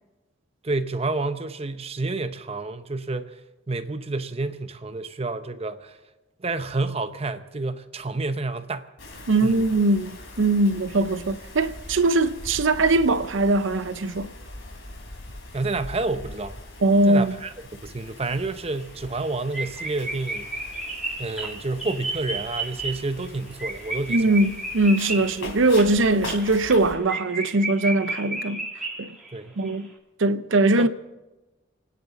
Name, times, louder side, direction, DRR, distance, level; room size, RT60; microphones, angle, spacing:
voice 1, 0.6-3.4 3.7-6.0 6.4-8.9 9.4-9.6 15.5-16.6 17.1-20.5 21.2-24.4 29.3-29.6 30.8-30.9, right 3 dB, 30° right, 0.7 m, -29 dB
Wind, 9.0-26.9, left 2 dB, 85° left, 3.6 m, -42 dB
voice 2, 9.3-14.3 16.8-17.4 24.1-28.7 29.0-29.1 29.6-29.9 30.2-30.9, right 2 dB, 70° right, 0.7 m, -21 dB
sound 1, 18.4-18.5 18.8-18.9 19.2-19.3 19.5-29.4 29.6-29.7, right 2 dB, ahead, 2.3 m, -33 dB
29.0 x 10.0 x 4.1 m
head